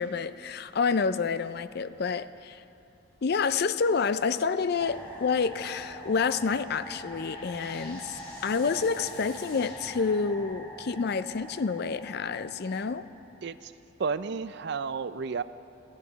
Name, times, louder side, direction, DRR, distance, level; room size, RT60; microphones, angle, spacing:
voice 1, 0.0-2.6 3.2-13.0, left 5 dB, 50° left, 14 dB, 0.4 m, -28 dB
sound 1, 4.8-13.6, equal, 10° left, 1.8 m, -44 dB
sound 2, 6.3-10.7, left 3 dB, 75° left, 3.7 m, -51 dB
voice 2, 13.4-13.7 14.0-15.4, right 5 dB, 55° right, 14 dB, 0.4 m, -32 dB
21.5 x 14.0 x 4.0 m, 2.8 s
head